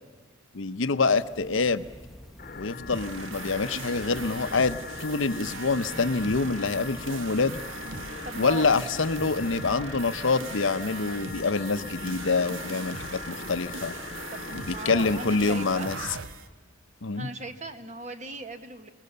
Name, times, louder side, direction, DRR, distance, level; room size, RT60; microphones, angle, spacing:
voice 1, 0.5-1.9 2.6-7.6 8.4-13.9 14.5-16.0 17.0-17.3, left 4 dB, 65° left, 12 dB, 0.8 m, -26 dB
sound 1, 1.1-12.6, equal, ahead, 1.0 m, -49 dB
sound 2, 2.4-16.1, left 5 dB, 45° left, 1.1 m, -40 dB
sound 3, 2.9-16.5, right 4 dB, 70° right, 1.1 m, -40 dB
voice 2, 8.2-8.7 9.6-9.9 14.3-15.9 17.1-18.9, right 2 dB, 35° right, 9 dB, 1.3 m, -38 dB
28.0 x 21.0 x 6.8 m, 1.4 s
head